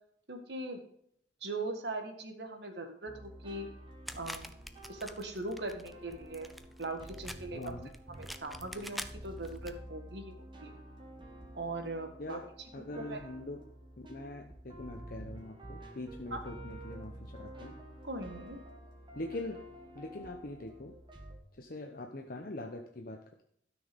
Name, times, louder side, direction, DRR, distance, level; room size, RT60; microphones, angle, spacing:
voice 1, 0.3-0.8 1.4-3.7 4.1-4.5 4.9-6.5 6.8-7.8 8.2-10.3 10.6-10.7 11.5-12.4 13.0-13.2 16.3-16.4 18.0-18.6, right 2 dB, 65° right, 5 dB, 1.8 m, -40 dB
sound 1, 3.1-21.4, right 1 dB, 25° right, 1.6 m, -50 dB
sound 2, 4.1-9.7, equal, ahead, 0.5 m, -47 dB
voice 2, 7.5-7.9 12.2-12.5 12.7-13.6 14.0-17.7 19.1-19.6 19.9-20.9 21.6-23.2, left 2 dB, 50° left, 3 dB, 0.9 m, -42 dB
13.0 x 6.3 x 5.2 m, 0.67 s
head